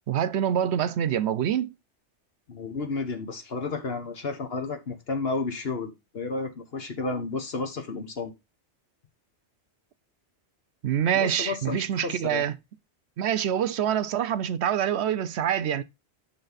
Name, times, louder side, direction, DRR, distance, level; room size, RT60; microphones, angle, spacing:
voice 1, 0.1-1.7 10.8-12.5 13.2-15.8, right 9 dB, 75° right, 0.9 m, -26 dB
voice 2, 2.5-8.3 11.1-12.4, left 3 dB, 60° left, 1.5 m, -32 dB
8.9 x 5.9 x 4.0 m
omnidirectional pair, 1.2 m